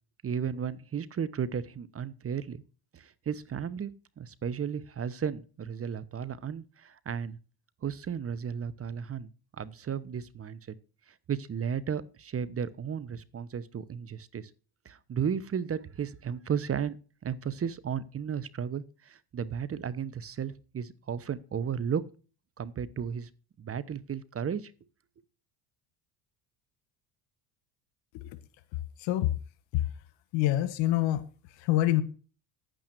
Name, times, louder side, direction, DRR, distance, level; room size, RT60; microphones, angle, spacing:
voice 1, 0.2-2.6 2.9-7.4 7.8-9.3 9.6-10.7 11.1-14.5 14.8-17.0 17.2-22.0 22.6-23.3 23.6-24.7, right 7 dB, 30° right, 17 dB, 1.0 m, -34 dB
voice 2, 29.0-29.3 29.7-29.8 30.3-31.2 31.6-32.0, left 14 dB, 70° left, 14 dB, 1.7 m, -25 dB
10.0 x 9.0 x 4.6 m, 0.36 s
supercardioid pair, 90°, 47 cm